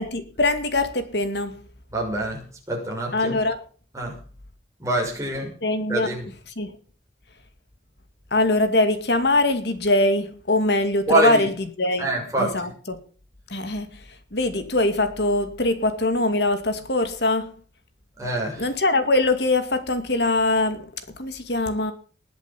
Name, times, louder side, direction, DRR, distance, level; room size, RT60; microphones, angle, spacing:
voice 1, 0.0-1.6 3.1-3.6 5.6-6.1 6.6-6.7 8.3-11.5 11.8-12.1 12.4-13.0 13.5-14.0 14.3-17.5 18.6-20.9 21.2-21.9, left 2 dB, 70° left, 2.4 m, -22 dB
voice 2, 1.9-3.4 3.9-4.2 4.8-5.5 5.9-6.3 11.1-11.4 12.0-12.5 18.2-18.6, right 2 dB, 15° right, 6.1 m, -25 dB
20.0 x 8.1 x 7.3 m
head